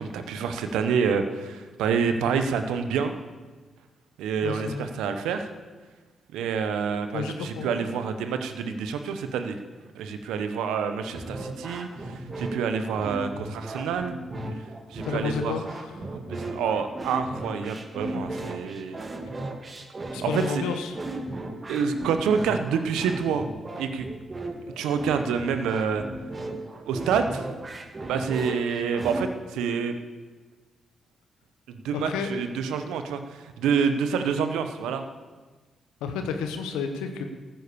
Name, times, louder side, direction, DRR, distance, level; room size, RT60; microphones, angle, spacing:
voice 1, 0.0-3.1 4.2-5.5 6.3-9.6 9.9-14.2 14.9-15.5 16.3-19.0 20.2-20.6 21.7-23.5 23.8-24.1 24.8-26.0 26.9-27.5 28.0-29.9 31.7-35.0, right 6 dB, 85° right, 8 dB, 1.0 m, -27 dB
voice 2, 4.4-4.8 7.1-8.0 15.0-16.1 20.1-21.0 31.9-32.3 36.0-37.2, left 6 dB, 90° left, 6 dB, 1.2 m, -31 dB
sound 1, 11.1-29.2, right 2 dB, 40° right, 2.0 m, -36 dB
14.0 x 9.2 x 6.9 m, 1.3 s
supercardioid pair, 45°, 0 cm